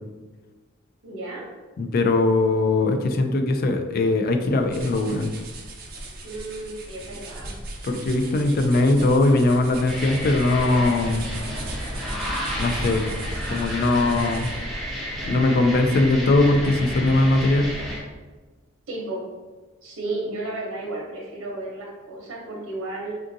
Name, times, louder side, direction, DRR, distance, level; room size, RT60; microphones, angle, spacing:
voice 1, 1.0-1.4 6.2-7.5 18.9-19.2 19.8-23.1, right 2 dB, 85° right, -3 dB, 0.7 m, -33 dB
voice 2, 1.8-5.3 7.8-11.2 12.6-13.0 13.5-14.5 15.2-17.7, left 2 dB, 45° left, 5 dB, 0.3 m, -20 dB
sound 1, 4.3-14.7, right 1 dB, 50° right, 0.5 m, -37 dB
sound 2, 9.9-18.0, equal, ahead, 0.6 m, -31 dB
3.5 x 2.5 x 2.6 m, 1.3 s
head